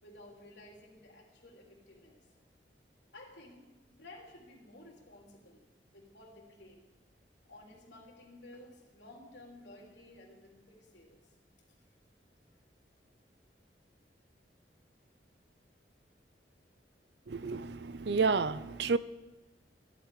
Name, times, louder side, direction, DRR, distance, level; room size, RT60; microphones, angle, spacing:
voice 1, 0.0-2.2 3.1-3.7 4.0-5.6 5.9-6.8 7.5-11.3, left 1 dB, 85° left, 3.4 m, -54 dB
voice 2, 17.3-19.0, right 4 dB, 75° right, 0.6 m, -30 dB
15.5 x 11.0 x 5.0 m
head